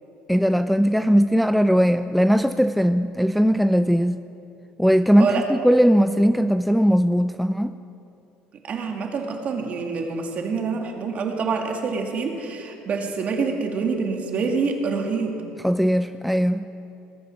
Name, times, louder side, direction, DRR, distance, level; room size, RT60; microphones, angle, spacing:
voice 1, 0.3-4.2 4.8-7.8 15.6-16.7, equal, ahead, 0.3 m, -19 dB
voice 2, 8.7-15.4, right 5 dB, 45° right, 2.0 m, -26 dB
20.0 x 8.3 x 6.0 m
supercardioid pair, 105°, 3 cm